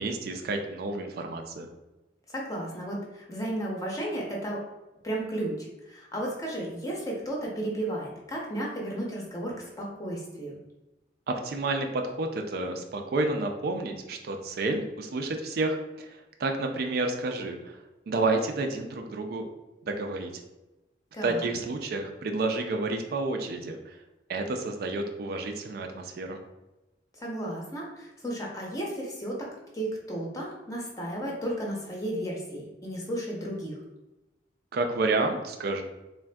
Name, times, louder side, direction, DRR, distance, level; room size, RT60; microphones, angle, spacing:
voice 1, 0.0-1.7 11.3-17.8 18.1-19.5 19.9-20.3 21.2-23.9 24.3-26.4 34.7-35.8, right 2 dB, 55° right, 4 dB, 0.3 m, -30 dB
voice 2, 2.3-4.6 5.0-10.6 21.1-21.5 27.2-29.5 29.7-33.7, right 1 dB, 20° left, -2 dB, 0.6 m, -33 dB
3.5 x 2.5 x 2.2 m, 1.0 s
head